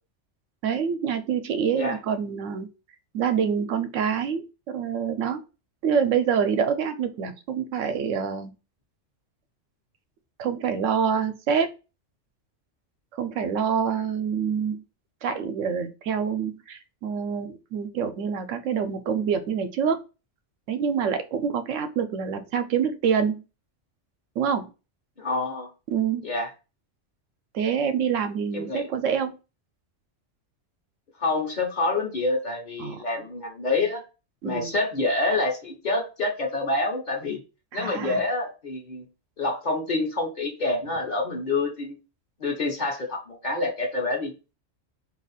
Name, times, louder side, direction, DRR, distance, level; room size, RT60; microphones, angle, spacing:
voice 1, 0.6-2.7 3.1-5.4 5.8-8.5 10.4-11.7 13.2-14.8 15.2-20.0 20.7-23.4 24.4-24.7 25.9-26.2 27.5-29.3 32.8-33.0 34.4-34.7 37.7-38.2, right 7 dB, 85° right, 9 dB, 0.9 m, -26 dB
voice 2, 25.2-25.7 26.2-26.5 28.5-28.8 31.2-34.0 34.4-37.4 37.7-39.1 39.4-42.0 42.4-44.5, left 2 dB, 45° left, 0 dB, 0.9 m, -27 dB
2.7 x 2.4 x 4.0 m, 0.30 s
omnidirectional pair, 1.3 m